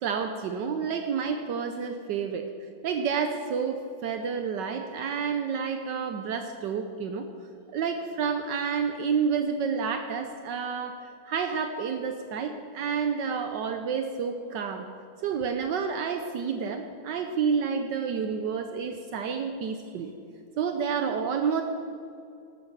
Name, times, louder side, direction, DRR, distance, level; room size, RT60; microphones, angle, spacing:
voice 1, 0.0-2.5 2.8-7.3 7.7-11.0 11.3-14.8 15.2-20.1 20.6-21.6, right 6 dB, 70° right, 6 dB, 1.3 m, -29 dB
12.0 x 9.7 x 7.3 m, 2.4 s
omnidirectional pair, 2.1 m